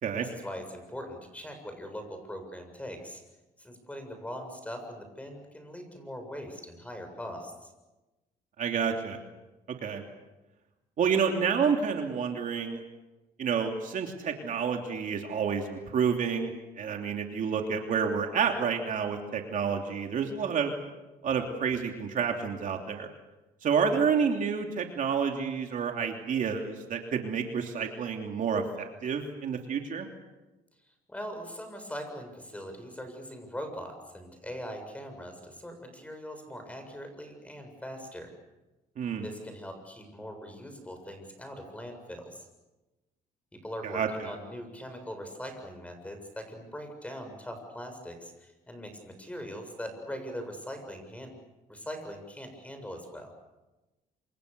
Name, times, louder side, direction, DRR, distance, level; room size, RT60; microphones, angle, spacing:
voice 1, 0.2-3.2 3.6-7.7 31.1-38.3 39.2-42.5 43.6-51.3 51.7-53.3, equal, 10° left, 6 dB, 7.2 m, -41 dB
voice 2, 8.6-9.2 9.8-10.0 11.0-12.8 13.4-16.5 16.8-20.7 21.2-23.1 23.6-30.1 39.0-39.3 43.8-44.3, right 6 dB, 50° right, 3 dB, 3.1 m, -29 dB
27.5 x 27.0 x 7.0 m, 1.1 s
cardioid pair, 110°, 17 cm